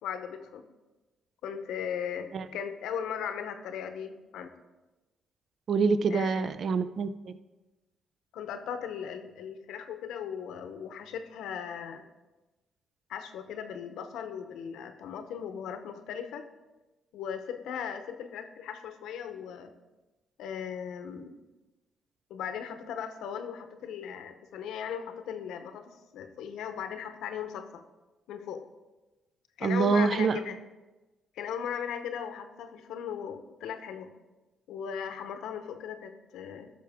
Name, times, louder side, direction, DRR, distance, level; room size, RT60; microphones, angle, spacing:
voice 1, 0.0-0.7 1.4-4.5 6.1-6.5 8.3-12.0 13.1-16.4 17.1-19.7 20.4-21.4 22.3-27.8 28.3-28.6 29.6-30.6 31.4-34.1 34.7-36.7, left 8 dB, 85° left, 8 dB, 0.8 m, -37 dB
voice 2, 5.7-7.1 29.6-30.4, right 5 dB, 55° right, 12 dB, 0.5 m, -25 dB
13.0 x 6.0 x 3.6 m, 1.1 s
cardioid pair, 90°, 0 cm